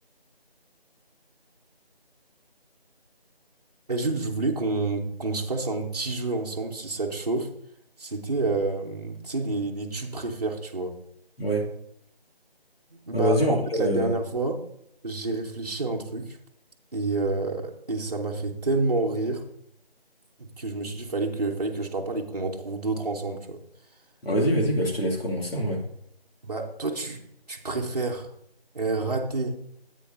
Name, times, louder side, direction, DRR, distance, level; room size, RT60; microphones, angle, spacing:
voice 1, 3.9-7.5 8.0-11.0 12.9-14.6 15.0-16.4 16.9-19.4 20.4-23.6 26.4-27.2 27.5-28.3 28.7-29.6, right 3 dB, 40° right, 0 dB, 1.0 m, -29 dB
voice 2, 13.1-14.1 24.2-25.8, equal, 70° left, 0 dB, 2.5 m, -24 dB
11.0 x 8.3 x 2.7 m, 0.72 s
figure-of-eight pair, 170°, 31 cm